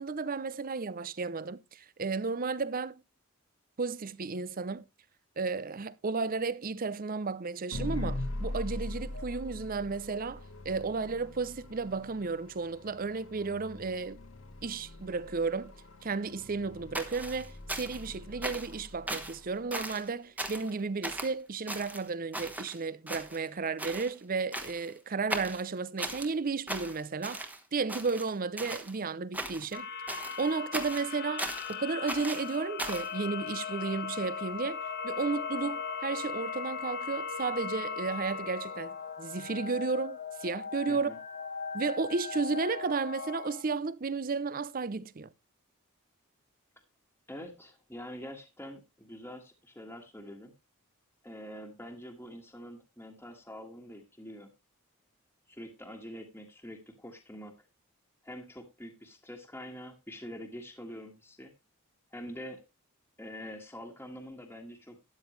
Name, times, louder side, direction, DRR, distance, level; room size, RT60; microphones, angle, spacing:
voice 1, 0.0-3.0 3.8-4.8 5.4-14.2 14.6-15.7 16.0-27.4 27.7-29.9 30.4-41.1 41.7-45.3, right 4 dB, 40° right, 0.6 m, -33 dB
sound 1, 7.7-19.9, left 1 dB, 65° left, 1.5 m, -42 dB
sound 2, 16.9-18.1 18.4-18.8 19.1-19.4 19.7-20.1 20.4-20.7 21.0-21.3 21.7-22.8 23.1-23.5 23.8-24.1 24.5-24.9 25.3-26.3 26.7-27.6 27.9-28.9 29.3-29.8 30.1-31.7 32.1-33.1, right 1 dB, 5° right, 1.3 m, -38 dB
sound 3, 29.7-43.6, left 5 dB, 45° left, 1.2 m, -38 dB
voice 2, 40.9-41.2 47.3-50.5 51.2-54.5 55.5-57.5 58.2-61.5 62.1-62.6 63.2-65.0, equal, 10° left, 1.6 m, -45 dB
13.0 x 9.6 x 3.2 m
head